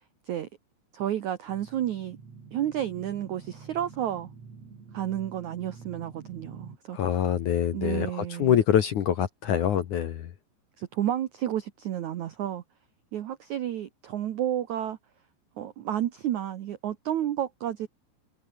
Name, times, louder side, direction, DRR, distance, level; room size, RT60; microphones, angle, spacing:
voice 1, 0.9-2.2 2.5-4.3 4.9-7.0 7.7-8.6 10.8-12.6 13.1-15.0 15.6-17.9, right 11 dB, 80° right, 1.6 m, -31 dB
sound 1, 1.5-6.8, right 5 dB, 40° right, 4.8 m, -47 dB
voice 2, 6.9-10.3, left 10 dB, 60° left, 2.1 m, -25 dB
omnidirectional pair, 5.2 m